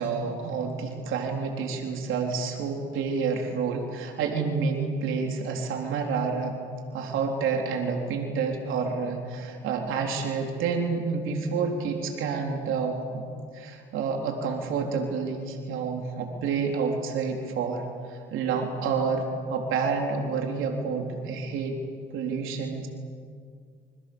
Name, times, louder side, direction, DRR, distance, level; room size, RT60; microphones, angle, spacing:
voice 1, 0.0-6.6 6.9-13.3 13.5-19.2 19.5-21.8 22.1-22.9, right 5 dB, 90° right, 2 dB, 3.9 m, -29 dB
29.0 x 26.0 x 7.1 m, 2.2 s
cardioid pair, 90°, 20 cm